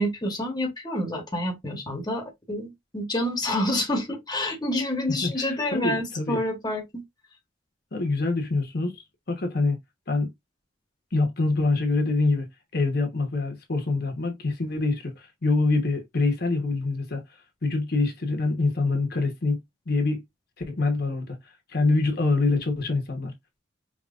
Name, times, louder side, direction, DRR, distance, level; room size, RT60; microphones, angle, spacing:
voice 1, 0.0-7.0, left 1 dB, 20° left, 1.1 m, -28 dB
voice 2, 5.2-6.4 7.9-9.0 9.3-9.8 10.1-10.3 11.1-12.5 12.7-17.2 17.6-19.6 19.9-20.2 20.7-21.4 21.7-23.3, left 3 dB, 50° left, 1.0 m, -25 dB
5.0 x 3.0 x 2.4 m
head